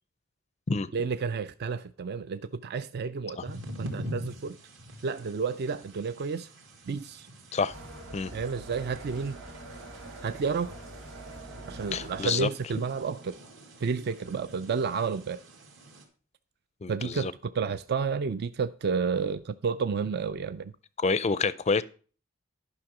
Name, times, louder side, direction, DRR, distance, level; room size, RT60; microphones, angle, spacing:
voice 1, 0.9-4.6 5.0-6.5 6.9-7.3 8.3-9.4 10.2-10.8 11.7-13.4 13.8-15.4 16.9-20.7, right 5 dB, 50° right, 0.4 m, -31 dB
sound 1, 3.4-16.0, equal, 65° right, 2.2 m, -45 dB
sound 2, 7.7-12.5, right 2 dB, 90° right, 3.3 m, -44 dB
voice 2, 11.9-12.5 16.8-17.3 21.0-21.8, left 4 dB, 30° left, 0.4 m, -27 dB
10.5 x 6.0 x 4.8 m
head